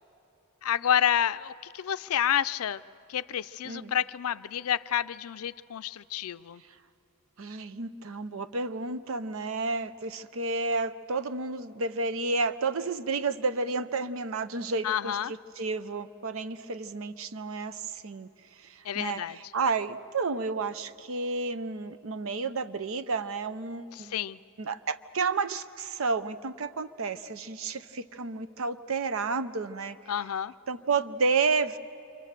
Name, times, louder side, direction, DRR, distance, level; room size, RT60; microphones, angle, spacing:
voice 1, 0.6-2.8 3.1-6.6 14.8-15.3 18.8-19.4 23.9-24.4 30.1-30.5, left 9 dB, 85° left, 15 dB, 0.4 m, -29 dB
voice 2, 7.4-18.3 18.6-19.2 19.5-24.1 24.6-30.0 30.7-31.8, right 4 dB, 65° right, 13 dB, 0.7 m, -31 dB
27.5 x 25.0 x 6.6 m, 2.9 s
head